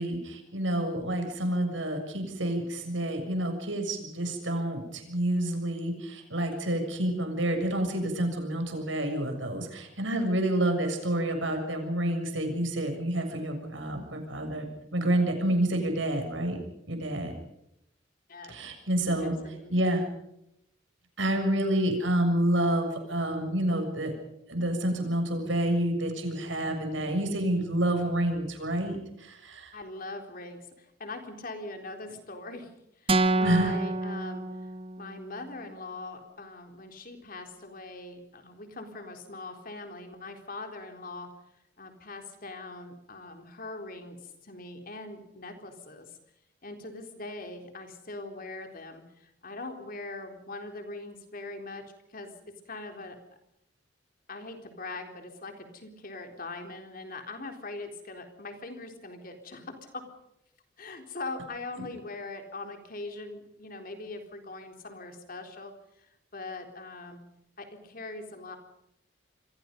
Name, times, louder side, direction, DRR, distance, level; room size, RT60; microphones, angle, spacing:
voice 1, 0.0-14.7 14.9-16.6 16.9-17.3 18.5-19.3 19.7-20.0 21.2-24.1 24.5-29.7 33.4-33.7, right 1 dB, 80° right, 4 dB, 7.0 m, -28 dB
voice 2, 19.2-19.7 29.7-34.7 35.0-41.3 41.8-46.1 46.6-53.2 54.3-60.1 60.8-67.2 67.6-68.6, left 2 dB, 50° left, 5 dB, 3.9 m, -42 dB
sound 1, 33.1-35.2, right 2 dB, 30° right, 1.2 m, -27 dB
28.5 x 23.0 x 5.4 m, 0.80 s
head